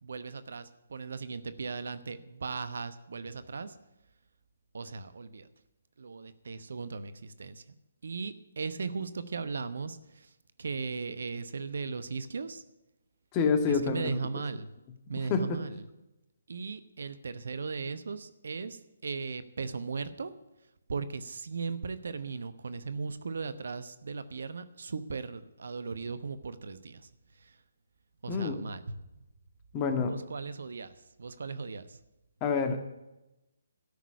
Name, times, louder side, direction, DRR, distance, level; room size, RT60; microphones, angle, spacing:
voice 1, 0.0-3.7 4.7-5.5 6.0-7.6 8.0-10.3 10.6-12.6 13.6-14.7 15.1-15.8 16.5-20.3 20.9-27.1 27.4-27.6 28.2-29.0 30.0-32.0, right 4 dB, 65° right, 13 dB, 0.9 m, -37 dB
voice 2, 13.3-14.2 15.3-15.4 28.3-28.5 29.7-30.1 32.4-32.8, left 5 dB, 25° left, 7 dB, 1.7 m, -27 dB
13.0 x 6.2 x 9.4 m, 0.94 s
figure-of-eight pair, 140°, 0 cm